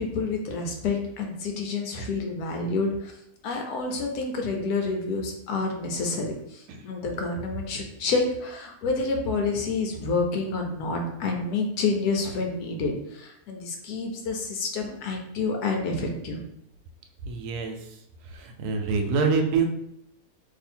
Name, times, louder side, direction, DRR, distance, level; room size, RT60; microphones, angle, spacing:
voice 1, 0.0-3.1 3.4-6.3 6.5-16.4, left 3 dB, 90° left, 3 dB, 1.2 m, -28 dB
voice 2, 17.3-18.0 18.2-19.7, right 5 dB, 85° right, 4 dB, 1.1 m, -26 dB
2.7 x 2.7 x 4.3 m, 0.79 s
omnidirectional pair, 1.6 m